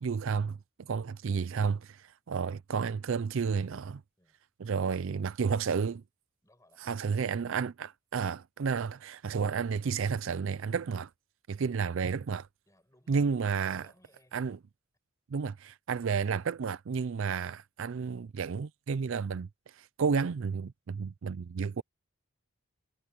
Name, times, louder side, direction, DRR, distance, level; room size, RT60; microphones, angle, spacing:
voice 1, 0.0-4.0 4.6-6.0 6.8-11.1 11.5-12.5 13.1-13.8 14.3-14.6 15.3-21.8, right 5 dB, 60° right, 0.4 m, -31 dB
voice 2, 6.4-7.2 8.9-9.1 11.8-12.0 12.7-13.3 13.6-14.6, left 1 dB, 15° left, 7.2 m, -65 dB
head